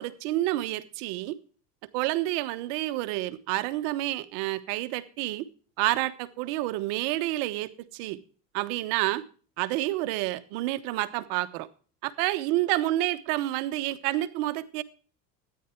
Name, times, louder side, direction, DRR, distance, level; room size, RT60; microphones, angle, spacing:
voice 1, 0.0-1.4 1.9-5.5 5.8-8.2 8.5-9.2 9.6-11.7 12.0-14.8, right 16 dB, 70° right, 12 dB, 1.2 m, -29 dB
13.0 x 10.0 x 4.5 m, 0.39 s
supercardioid pair, 95°, 47 cm